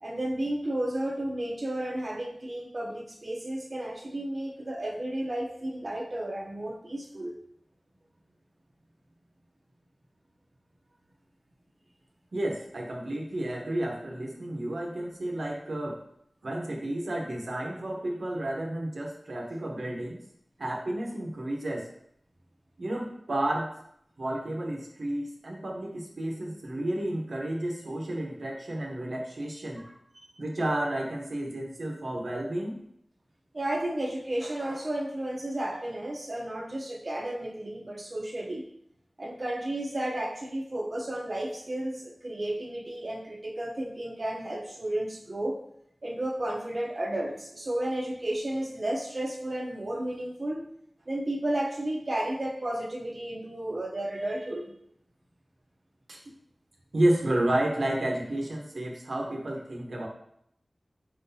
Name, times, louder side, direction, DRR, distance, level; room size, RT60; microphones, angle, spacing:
voice 1, 0.0-7.3 29.8-29.9 30.2-30.3 33.5-38.6 39.2-45.6 46.0-50.6 51.1-54.7, right 1 dB, 45° right, -3 dB, 0.7 m, -33 dB
voice 2, 12.3-16.0 16.4-20.2 20.6-21.9 22.8-23.7 24.2-29.8 30.4-32.8 56.1-56.2 56.9-60.1, right 1 dB, 75° right, -1 dB, 0.9 m, -31 dB
4.9 x 3.8 x 2.7 m, 0.70 s
wide cardioid pair, 70°, 0 cm